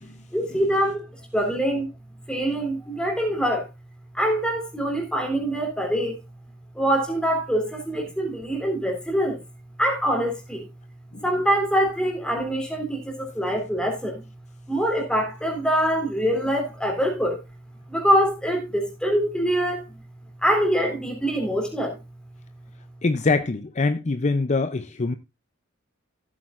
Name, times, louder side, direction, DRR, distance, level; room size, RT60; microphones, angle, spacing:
voice 1, 0.3-1.0 1.3-1.9 2.3-3.7 4.1-6.2 6.7-9.4 9.8-10.7 11.2-14.2 14.7-17.4 17.9-19.8 20.4-22.0, equal, 5° left, 3.2 m, -24 dB
voice 2, 23.0-25.1, left 3 dB, 35° left, 0.6 m, -24 dB
15.0 x 8.6 x 2.5 m
head